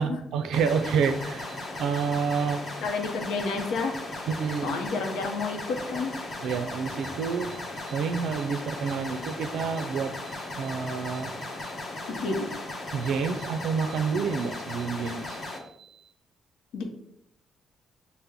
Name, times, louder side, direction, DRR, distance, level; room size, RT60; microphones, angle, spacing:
voice 1, 0.0-2.6 4.3-4.8 6.4-11.4 11.6-11.7 12.9-16.0, right 6 dB, 80° right, 9 dB, 0.4 m, -29 dB
sound 1, 0.5-15.6, left 2 dB, 45° left, 1.2 m, -37 dB
voice 2, 2.8-4.0 4.6-6.2 12.1-12.5 16.7-16.8, left 4 dB, 85° left, 4 dB, 0.7 m, -30 dB
5.5 x 2.1 x 3.5 m, 0.77 s
cardioid pair, 90°, 0 cm